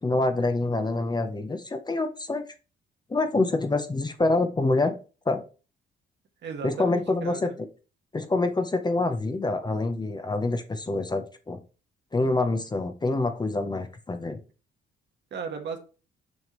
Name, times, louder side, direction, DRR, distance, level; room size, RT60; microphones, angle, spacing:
voice 1, 0.0-2.4 3.1-5.0 5.3-5.4 6.6-7.7 8.1-11.6 12.1-14.4, left 2 dB, 20° left, 7 dB, 0.7 m, -26 dB
voice 2, 6.4-7.5 15.3-15.8, right 5 dB, 65° right, 4 dB, 1.3 m, -35 dB
6.3 x 4.9 x 3.0 m, 0.34 s
cardioid pair, 90°, 20 cm